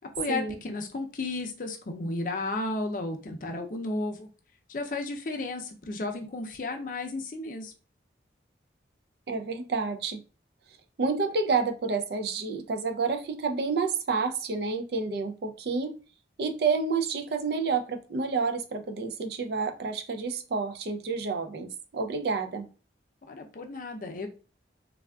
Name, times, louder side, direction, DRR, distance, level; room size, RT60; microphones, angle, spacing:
voice 1, 0.2-4.3 4.7-7.7 23.2-24.3, left 2 dB, 45° left, 0.5 m, -33 dB
voice 2, 9.3-10.2 11.0-16.0 16.4-22.7, right 4 dB, 60° right, 0.4 m, -29 dB
3.4 x 2.3 x 2.2 m
head